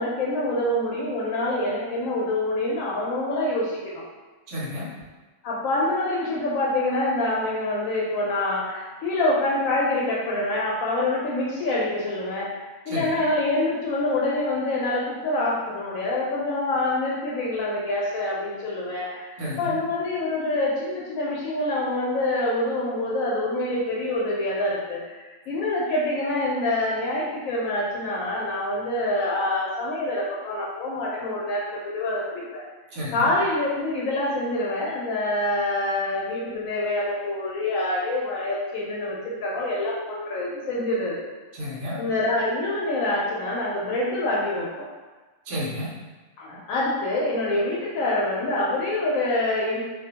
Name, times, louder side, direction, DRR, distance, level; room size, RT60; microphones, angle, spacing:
voice 1, 0.0-4.0 5.4-32.6 33.1-41.1 42.0-44.9 46.4-49.8, left 2 dB, 85° left, -5 dB, 1.0 m, -26 dB
voice 2, 4.5-4.9 12.9-13.1 19.4-19.7 32.9-33.3 41.5-42.0 45.5-45.9, left 1 dB, 65° right, -6 dB, 1.0 m, -31 dB
2.4 x 2.1 x 2.8 m, 1.3 s
omnidirectional pair, 1.4 m